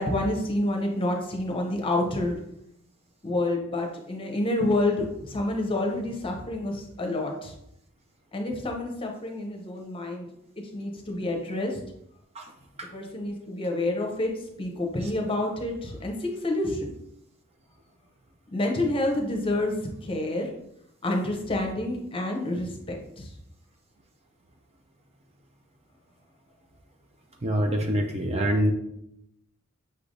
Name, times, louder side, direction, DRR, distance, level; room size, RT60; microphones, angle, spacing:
voice 1, 0.0-2.4 3.2-7.5 8.3-10.3 10.6-11.8 12.9-16.9 18.5-20.5 21.0-23.3, left 1 dB, 25° left, 2 dB, 0.7 m, -28 dB
voice 2, 27.4-28.7, equal, 30° right, 3 dB, 0.5 m, -25 dB
5.6 x 3.3 x 2.6 m, 0.76 s
head